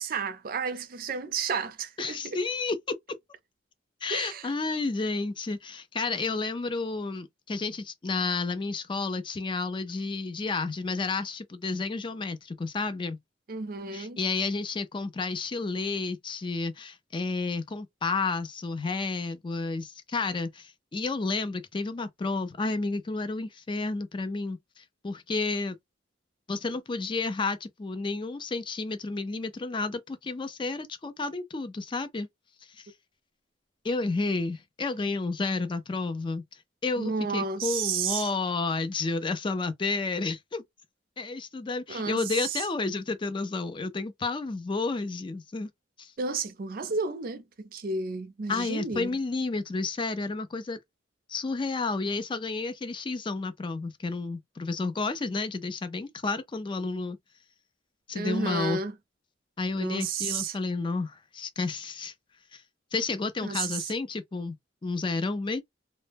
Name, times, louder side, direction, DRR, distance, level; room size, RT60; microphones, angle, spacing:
voice 1, 0.0-2.4 4.1-4.5 13.5-14.2 37.0-38.3 41.9-42.6 46.2-49.1 58.1-58.9 59.7-60.6 63.4-63.9, right 4 dB, 50° right, 0.5 m, -32 dB
voice 2, 2.0-3.0 4.0-13.2 13.9-25.8 26.5-32.3 32.7-32.9 33.8-36.4 36.8-40.6 41.2-45.7 46.0-46.1 48.5-50.8 51.3-57.2 58.1-58.8 59.6-62.1 62.5-62.6 62.9-64.6 64.8-65.6, left 3 dB, 25° left, 0.4 m, -31 dB
2.1 x 2.0 x 3.3 m
head